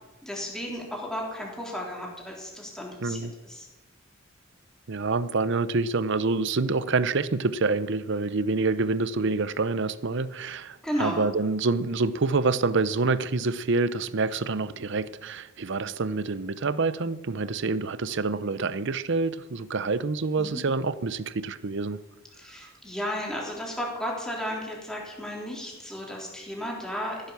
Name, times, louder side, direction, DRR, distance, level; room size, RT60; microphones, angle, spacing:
voice 1, 0.2-3.7 10.8-11.3 20.4-20.6 22.4-27.3, equal, 5° left, -2 dB, 3.6 m, -34 dB
voice 2, 3.0-3.3 4.9-22.0, right 3 dB, 60° right, 16 dB, 0.7 m, -27 dB
15.0 x 10.5 x 7.0 m, 1.1 s
head